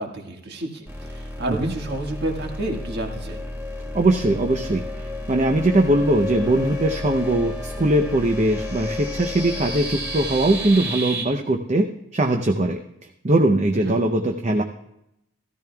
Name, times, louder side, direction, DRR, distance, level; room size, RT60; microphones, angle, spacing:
voice 1, 0.0-3.4 13.8-14.0, right 1 dB, 50° right, 2 dB, 1.7 m, -30 dB
sound 1, 0.9-11.2, left 1 dB, 10° right, 1.7 m, -31 dB
voice 2, 3.9-4.8 5.3-11.9 12.1-12.8 13.2-14.6, right 1 dB, 35° right, 4 dB, 0.6 m, -20 dB
15.5 x 14.0 x 2.3 m, 0.81 s
head